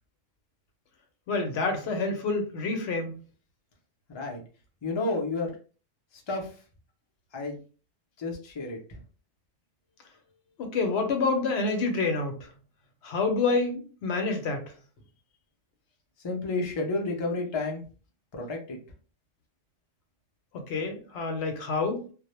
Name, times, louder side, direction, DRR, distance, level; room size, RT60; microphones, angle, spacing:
voice 1, 1.3-3.2 10.6-12.4 13.0-14.6 20.5-22.0, left 3 dB, 65° left, 0.8 m, -28 dB
voice 2, 4.1-4.4 4.8-5.5 6.1-6.6 7.3-7.6 8.2-9.0 16.2-17.8 18.3-18.8, left 2 dB, 45° left, 0.3 m, -31 dB
2.1 x 2.0 x 2.9 m
omnidirectional pair, 1.3 m